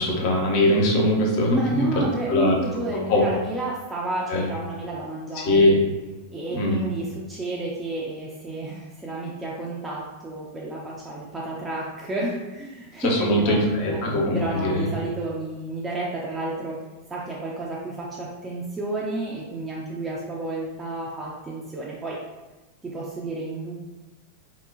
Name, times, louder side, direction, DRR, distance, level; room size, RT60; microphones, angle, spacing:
voice 1, 0.0-1.8 2.3-2.5 2.9-3.2 4.3-4.4 5.4-5.8 6.5-6.8 13.0-14.9, left 1 dB, 45° left, 0 dB, 0.6 m, -21 dB
voice 2, 1.5-5.8 6.3-14.0 14.3-16.8 17.1-22.2 22.8-23.7, right 2 dB, 15° right, -5 dB, 0.4 m, -31 dB
2.9 x 2.1 x 2.4 m, 1.1 s
figure-of-eight pair, 90°, 0 cm